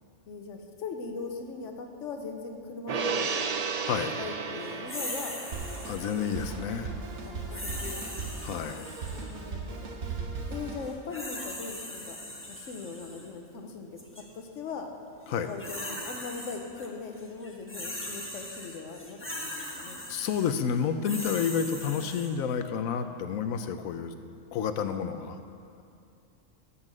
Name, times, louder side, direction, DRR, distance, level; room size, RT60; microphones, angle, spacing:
voice 1, 0.3-3.4 4.2-5.3 5.9-6.1 7.2-8.0 8.6-9.9 10.5-12.2 12.5-14.9 15.3-20.0, left 4 dB, 65° left, 4 dB, 1.3 m, -40 dB
Gong, 2.9-9.5 9.8-10.0, right 5 dB, 55° right, 0.4 m, -36 dB
voice 2, 3.9-4.2 5.9-6.9 8.4-8.9 15.3-15.5 20.1-24.1 24.5-25.4, left 7 dB, 85° left, 9 dB, 1.1 m, -30 dB
sound 1, 4.9-6.5 7.5-9.4 10.8-13.3 14.0-14.2 15.3-16.9 17.2-22.3, left 1 dB, 10° left, 1.0 m, -40 dB
Drum kit, 5.5-10.9, right 4 dB, 85° right, 1.6 m, -38 dB
13.0 x 5.6 x 7.6 m, 2.5 s
omnidirectional pair, 1.4 m